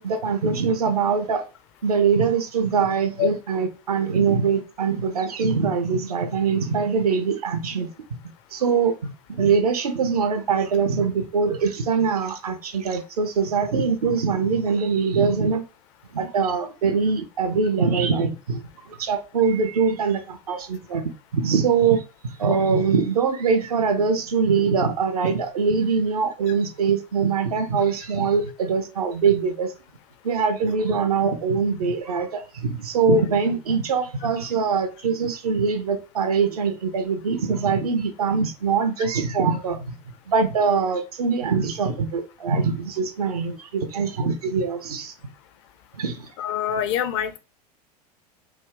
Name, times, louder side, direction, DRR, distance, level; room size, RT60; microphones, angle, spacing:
voice 1, 0.0-1.5 1.8-7.9 8.5-15.6 16.1-21.0 21.3-29.7 30.2-45.1 45.9-46.3, right 5 dB, 65° right, 0.7 m, -23 dB
voice 2, 46.4-47.4, left 10 dB, 45° left, 0.5 m, -25 dB
3.5 x 2.2 x 3.4 m
figure-of-eight pair, 85°, 21 cm